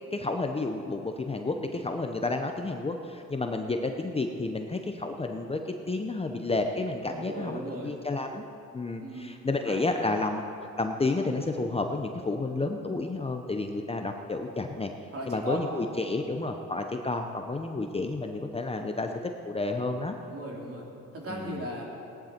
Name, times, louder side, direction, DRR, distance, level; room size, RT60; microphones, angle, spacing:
voice 1, 0.1-8.4 8.7-10.4 10.8-14.9 15.3-20.1 21.3-21.7, left 3 dB, 20° left, 5 dB, 0.8 m, -31 dB
voice 2, 7.1-7.9 9.0-9.3 9.7-10.0 15.1-15.6 20.3-20.8 21.1-21.8, right 1 dB, 50° right, -2 dB, 3.0 m, -37 dB
17.0 x 10.5 x 4.4 m, 2.7 s
cardioid pair, 90°, 30 cm